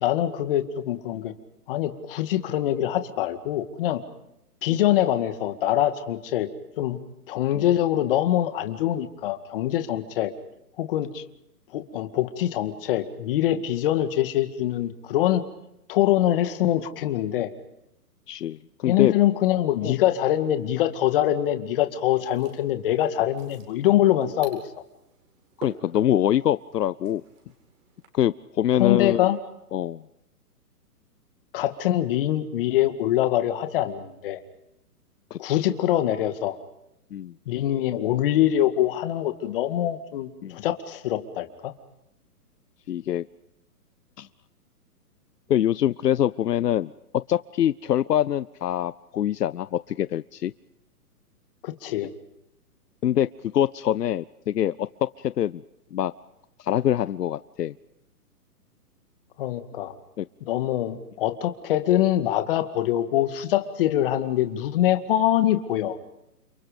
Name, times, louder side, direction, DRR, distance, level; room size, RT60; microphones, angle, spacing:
voice 1, 0.0-1.3 1.7-4.0 4.6-6.5 6.8-7.0 7.3-10.3 10.8-11.1 11.7-15.4 15.9-17.5 18.8-24.6 28.8-29.4 31.5-34.4 35.4-36.6 37.5-41.7 51.6-52.1 59.4-59.9 60.4-66.0, left 12 dB, 35° left, 9 dB, 2.1 m, -24 dB
voice 2, 18.3-19.1 19.8-19.9 25.6-27.2 28.1-29.3 29.7-30.0 35.3-35.4 37.1-37.3 40.4-40.6 42.9-43.3 44.2-44.3 45.5-46.9 47.3-50.5 53.0-53.3 53.5-55.6 55.9-56.1 56.6-57.7 60.2-60.3, left 11 dB, 80° left, 16 dB, 0.9 m, -24 dB
sound 1, 22.0-28.1, right 6 dB, 55° right, 7.9 m, -50 dB
30.0 x 27.0 x 5.2 m, 0.85 s
hypercardioid pair, 160°, 47 cm